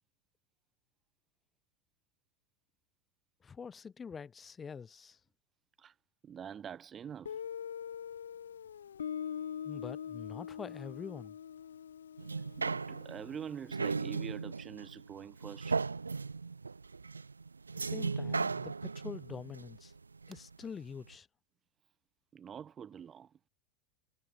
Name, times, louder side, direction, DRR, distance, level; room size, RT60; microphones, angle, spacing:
voice 1, 3.4-5.2 9.6-11.4 17.8-19.9 20.3-21.3, left 6 dB, 25° left, 5.8 m, -45 dB
voice 2, 6.2-7.4 12.6-15.8 22.3-23.4, right 8 dB, 30° right, 3.6 m, -45 dB
Guitar, 7.3-13.9, left 8 dB, 75° left, 1.1 m, -43 dB
sound 1, 12.2-20.7 21.1-21.2, right 4 dB, 90° right, 0.3 m, -37 dB
figure-of-eight pair, 85°, 0 cm